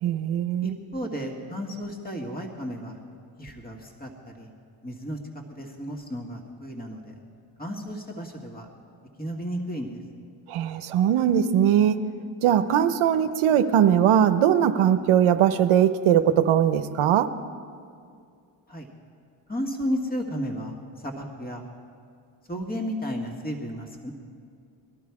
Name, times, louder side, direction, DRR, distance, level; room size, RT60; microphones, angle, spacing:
voice 1, 0.0-0.8 10.5-12.0 12.4-17.3, right 9 dB, 80° right, 9 dB, 0.8 m, -20 dB
voice 2, 0.6-3.0 3.4-4.5 4.8-5.2 5.5-7.1 7.6-8.7 9.2-9.9 18.7-18.9 19.5-21.6 22.5-24.1, equal, 20° left, 1 dB, 1.9 m, -33 dB
20.0 x 12.0 x 4.8 m, 2.3 s
cardioid pair, 70°, 49 cm